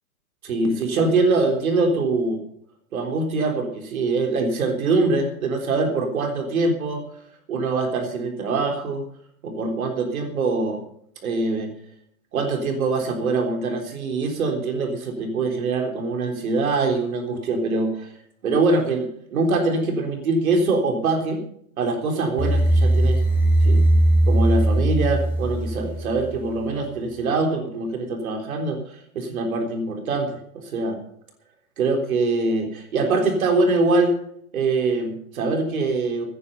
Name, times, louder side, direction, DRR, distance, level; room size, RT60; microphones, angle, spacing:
voice 1, 0.4-2.4 2.9-7.0 7.5-9.0 9.4-10.8 11.2-11.7 12.3-18.1 18.4-21.4 21.8-23.2 23.6-23.8 24.3-30.3 30.7-31.0 31.8-34.2 34.5-36.2, right 3 dB, 75° right, 3 dB, 3.8 m, -23 dB
sound 1, 22.4-26.5, right 1 dB, 5° right, 4.0 m, -19 dB
17.0 x 10.0 x 5.5 m, 0.66 s
hypercardioid pair, 160°, 43 cm